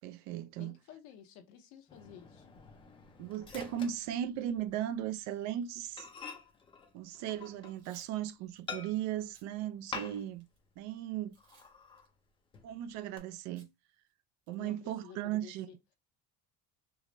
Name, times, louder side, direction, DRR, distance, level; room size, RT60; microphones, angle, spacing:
voice 1, 0.0-0.7 3.2-6.1 6.9-10.5 10.8-11.4 12.6-13.7 14.5-15.7, right 11 dB, 55° right, 0.4 m, -37 dB
voice 2, 0.6-2.5 14.5-15.8, left 8 dB, 60° left, 0.8 m, -53 dB
Microwave oven, 1.9-4.8 5.1-5.3 5.6-5.7 6.0-8.0 8.7-9.3 9.9-10.5 10.8-10.9 11.4-12.1 12.5-13.2, left 5 dB, 15° left, 0.5 m, -47 dB
Packing tape duct tape / Tearing, 7.7-8.1 8.6-8.7 9.2-9.5 10.0-10.6 11.3-11.7 12.0-12.1 13.6-13.7 14.1-14.2 14.5-14.8, right 5 dB, 85° right, 1.6 m, -62 dB
4.7 x 2.1 x 2.5 m
cardioid pair, 155°, 34 cm